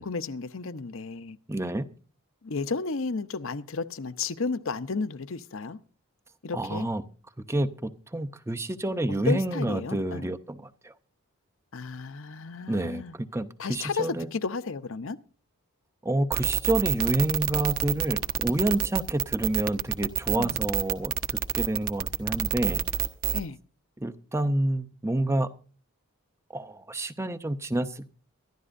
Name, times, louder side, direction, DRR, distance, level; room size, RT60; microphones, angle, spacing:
voice 1, 0.0-1.4 2.4-5.8 6.4-6.9 9.1-10.3 11.7-13.1 13.6-15.2 20.4-20.6 23.3-23.6, left 4 dB, 60° left, 0.7 m, -33 dB
voice 2, 1.5-1.9 6.5-7.0 7.5-10.9 12.7-14.3 16.0-21.1 21.6-22.8 24.0-25.5 26.5-28.1, right 1 dB, 10° right, 0.6 m, -28 dB
sound 1, 16.3-23.4, right 8 dB, 40° right, 0.9 m, -27 dB
23.5 x 12.0 x 2.6 m
head